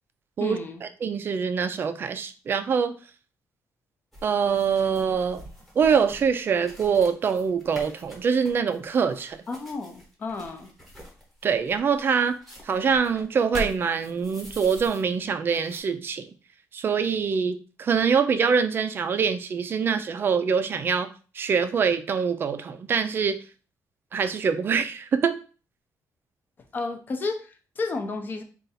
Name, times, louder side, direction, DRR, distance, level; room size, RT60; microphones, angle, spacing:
voice 1, 0.4-0.8 9.5-10.7 26.7-28.4, left 3 dB, 30° left, 0.5 m, -32 dB
voice 2, 1.0-2.9 4.2-5.4 5.8-9.4 11.4-12.4 12.6-16.3 16.7-21.1 21.3-23.4 24.1-25.4, right 6 dB, 35° right, 0.3 m, -24 dB
sound 1, 4.1-15.2 15.5-15.8, left 1 dB, ahead, 1.0 m, -44 dB
3.8 x 2.4 x 4.1 m
cardioid pair, 175°, 6 cm